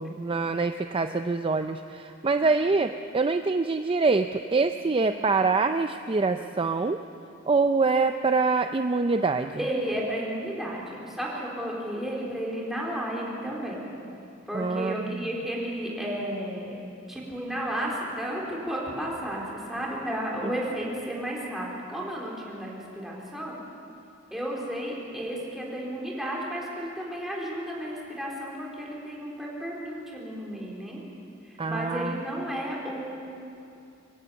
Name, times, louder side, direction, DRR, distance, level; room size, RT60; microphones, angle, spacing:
voice 1, 0.0-7.0 7.5-9.6 14.5-15.3 20.4-20.5 31.6-32.2, right 4 dB, 25° right, 8 dB, 0.5 m, -25 dB
voice 2, 9.6-13.9 14.5-16.8 17.1-23.6 24.3-31.0 31.4-33.1, equal, ahead, -4 dB, 4.1 m, -33 dB
25.0 x 16.0 x 7.1 m, 2.6 s
head